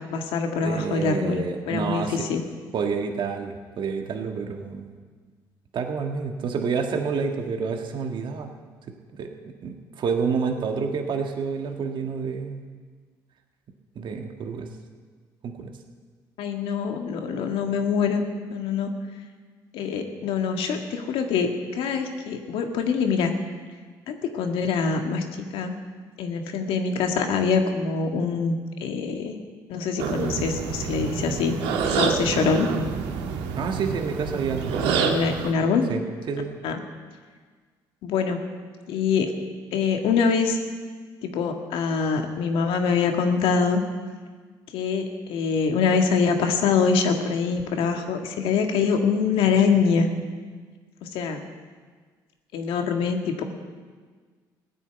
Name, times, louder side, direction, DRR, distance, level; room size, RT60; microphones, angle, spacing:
voice 1, 0.0-2.4 16.4-18.2 18.5-18.9 19.7-23.3 24.1-25.7 26.2-29.4 29.7-31.6 31.8-32.7 34.8-35.8 36.6-36.8 38.0-38.4 38.9-39.3 39.7-40.6 41.2-43.8 44.7-50.1 51.0-51.4 52.5-53.4, left 5 dB, 75° left, 4 dB, 1.8 m, -24 dB
voice 2, 0.6-2.3 2.7-4.9 5.7-8.5 9.1-9.3 9.6-12.7 13.9-14.7 15.4-15.7 33.6-34.8 35.9-36.6, right 5 dB, 60° right, 3 dB, 1.6 m, -28 dB
sound 1, 30.0-35.5, right 6 dB, 85° right, 1.6 m, -27 dB
15.5 x 10.0 x 8.0 m, 1.5 s
supercardioid pair, 65°, 9 cm